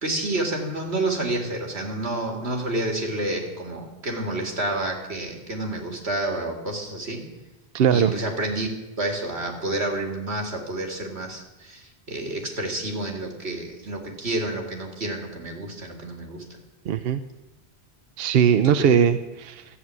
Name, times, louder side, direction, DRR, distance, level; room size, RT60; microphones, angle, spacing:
voice 1, 0.0-7.2 7.9-8.7 9.0-16.4 18.6-18.9, right 2 dB, 85° right, 3 dB, 2.5 m, -29 dB
voice 2, 7.7-8.1 16.9-17.2 18.2-19.6, right 8 dB, 70° right, 11 dB, 0.8 m, -20 dB
13.0 x 7.4 x 9.5 m, 1.1 s
omnidirectional pair, 1.1 m